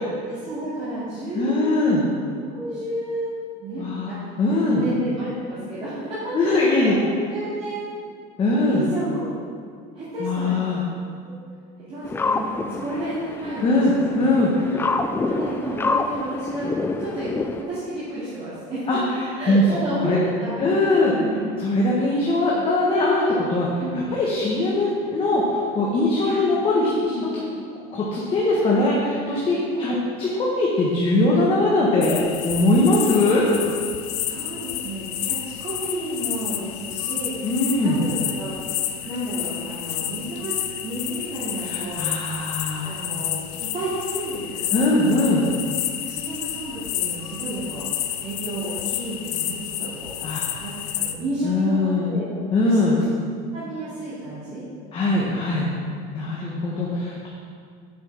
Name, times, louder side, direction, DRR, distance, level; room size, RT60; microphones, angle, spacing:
voice 1, 0.2-2.0 2.5-3.3 3.6-4.4 4.6-7.9 8.7-9.3 9.9-10.6 11.2-11.3 11.8-14.2 15.0-17.3 17.6-18.9 19.4-21.5 23.8-24.1 26.2-26.4 27.0-27.3 29.7-29.9 34.2-38.5 39.0-40.6 40.8-42.0 42.8-45.5 46.0-50.3 50.6-50.7 51.0-52.3 52.6-52.8 53.5-54.6 55.5-55.6 56.3-56.6, right 1 dB, 30° right, -11 dB, 2.6 m, -31 dB
voice 2, 1.3-2.0 3.8-4.1 4.4-4.8 6.3-6.9 8.4-8.8 10.2-10.8 13.6-14.8 18.9-19.0 19.5-19.6 20.0-20.2 20.6-21.2 21.6-23.8 24.1-27.1 27.9-33.5 37.4-38.0 41.6-42.9 44.7-45.4 50.2-50.4 51.4-52.1 52.5-53.0 54.9-55.7 56.1-57.3, left 2 dB, 25° left, -4 dB, 1.3 m, -21 dB
sound 1, 12.0-17.6, left 3 dB, 10° left, 0.4 m, -27 dB
sound 2, 32.0-51.1, left 11 dB, 80° left, 0.7 m, -30 dB
7.6 x 6.2 x 6.3 m, 2.2 s
cardioid pair, 145°, 20 cm